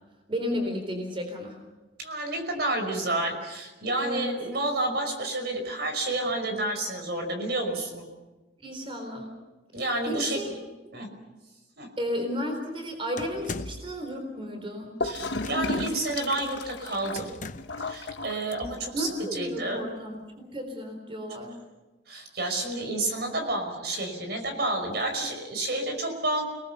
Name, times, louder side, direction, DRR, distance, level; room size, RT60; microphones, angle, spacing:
voice 1, 0.3-1.6 4.0-4.3 8.6-9.3 10.1-10.5 12.0-14.9 18.9-21.5, equal, 30° right, 4 dB, 3.9 m, -33 dB
voice 2, 2.0-8.0 9.7-10.6 10.9-11.1 11.8-11.9 15.0-17.4 17.8-19.9 22.1-26.4, right 2 dB, 65° right, 5 dB, 5.5 m, -30 dB
sound 1, 13.2-14.0 15.4-15.9 17.2-17.9, left 3 dB, 45° left, 0.8 m, -38 dB
Gurgling / Toilet flush, 15.0-19.0, left 2 dB, 80° left, 1.3 m, -34 dB
30.0 x 19.5 x 6.9 m, 1.1 s
head